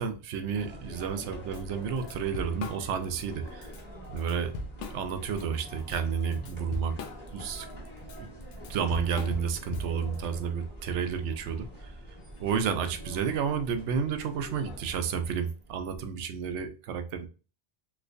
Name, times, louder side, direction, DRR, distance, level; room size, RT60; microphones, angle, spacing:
voice 1, 0.0-3.7 4.1-4.5 4.9-6.9 7.3-7.7 8.2-8.3 8.7-11.9 12.4-17.3, right 6 dB, 75° right, 0.9 m, -31 dB
sound 1, 0.5-15.7, equal, 20° left, 1.2 m, -45 dB
Drum kit / Drum, 1.5-1.6 2.0-3.3 3.6-3.8 4.2-5.4 5.8-10.2, left 3 dB, 75° left, 0.9 m, -40 dB
3.2 x 3.0 x 2.5 m
omnidirectional pair, 1.2 m